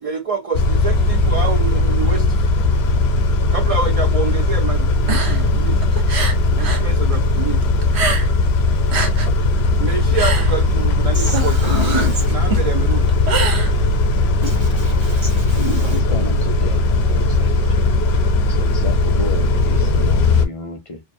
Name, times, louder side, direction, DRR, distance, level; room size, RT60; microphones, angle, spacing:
voice 1, 0.0-2.3 3.5-5.8 6.5-7.6 9.8-11.7 11.9-13.1, right 5 dB, 55° right, 0.4 m, -26 dB
Car / Idling / Accelerating revving vroom, 0.5-20.5, left 2 dB, 80° left, 0.8 m, -17 dB
sound 1, 5.0-6.9 7.2-8.5 8.8-14.2, right 4 dB, 90° right, 1.1 m, -25 dB
voice 2, 11.1-12.3 14.4-16.0, equal, 30° right, 0.8 m, -27 dB
voice 3, 15.8-17.6 18.4-21.0, left 3 dB, 45° left, 0.5 m, -32 dB
2.4 x 2.4 x 2.4 m
omnidirectional pair, 1.1 m